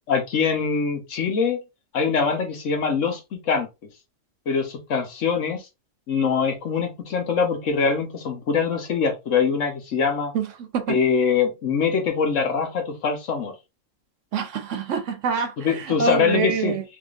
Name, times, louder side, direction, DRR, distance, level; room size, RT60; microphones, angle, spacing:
voice 1, 0.1-1.6 1.9-3.7 4.5-5.6 6.1-10.3 10.9-13.5 15.6-16.8, left 5 dB, 70° left, 1.3 m, -23 dB
voice 2, 14.3-16.8, right 6 dB, 70° right, 1.0 m, -26 dB
3.6 x 3.5 x 2.4 m
omnidirectional pair, 1.4 m